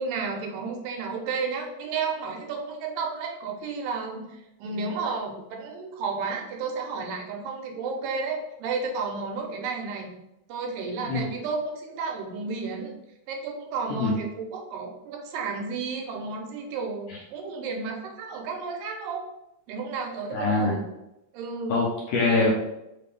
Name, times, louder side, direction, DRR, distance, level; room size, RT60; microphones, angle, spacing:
voice 1, 0.0-10.1 10.5-12.9 13.3-19.2 19.7-20.9 21.3-21.7, right 4 dB, 90° right, 1 dB, 2.4 m, -32 dB
voice 2, 20.3-20.7 21.7-22.5, left 3 dB, 75° left, -5 dB, 1.5 m, -23 dB
5.3 x 2.5 x 3.5 m, 0.88 s
omnidirectional pair, 4.0 m